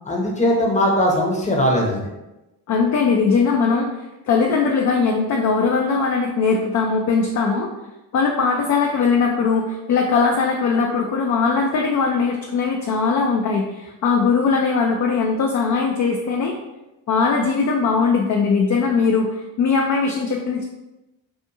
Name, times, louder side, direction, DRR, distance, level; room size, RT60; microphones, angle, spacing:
voice 1, 0.1-2.1, equal, 15° left, -1 dB, 0.7 m, -19 dB
voice 2, 2.7-3.9 4.2-7.7 8.1-16.5 17.1-20.6, left 5 dB, 40° left, 1 dB, 0.4 m, -20 dB
2.5 x 2.4 x 2.7 m, 0.99 s
supercardioid pair, 45°, 47 cm